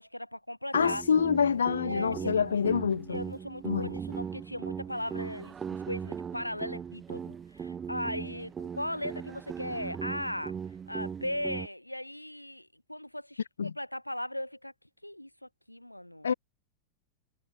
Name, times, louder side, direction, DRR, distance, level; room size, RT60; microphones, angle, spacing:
voice 1, 0.0-1.0 1.8-2.6 3.1-10.6 10.9-14.7 15.0-16.3, left 1 dB, 90° left, 4.2 m, -38 dB
voice 2, 0.7-3.2 3.6-3.9 13.6-13.7 16.2-16.3, left 6 dB, 70° left, 0.5 m, -26 dB
sound 1, 0.7-11.7, right 7 dB, 20° right, 0.5 m, -39 dB
figure-of-eight pair, 90°, 0 cm